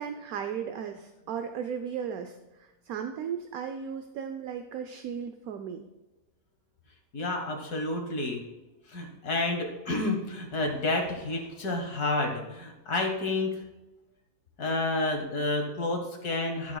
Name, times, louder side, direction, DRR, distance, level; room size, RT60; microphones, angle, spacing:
voice 1, 0.0-5.9, right 7 dB, 70° right, 7 dB, 1.1 m, -36 dB
voice 2, 7.1-8.4 8.9-13.6 14.6-16.8, left 2 dB, 75° left, 2 dB, 2.0 m, -30 dB
14.0 x 7.3 x 2.3 m, 1.1 s
omnidirectional pair, 1.7 m